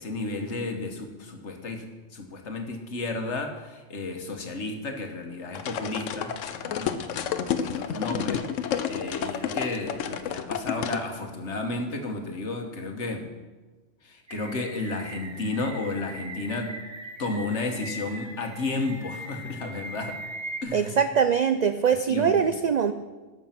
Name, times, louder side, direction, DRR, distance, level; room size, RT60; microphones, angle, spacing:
voice 1, 0.0-13.3 14.0-16.8 17.2-20.2 20.6-20.9 21.9-22.5, left 2 dB, 70° left, 4 dB, 1.6 m, -33 dB
sound 1, 5.5-11.0, left 8 dB, 85° left, 1.0 m, -30 dB
sound 2, 14.3-20.6, right 1 dB, 25° right, 1.3 m, -40 dB
voice 2, 20.7-22.9, right 7 dB, 85° right, 10 dB, 0.3 m, -22 dB
13.0 x 6.2 x 5.9 m, 1.3 s
omnidirectional pair, 1.3 m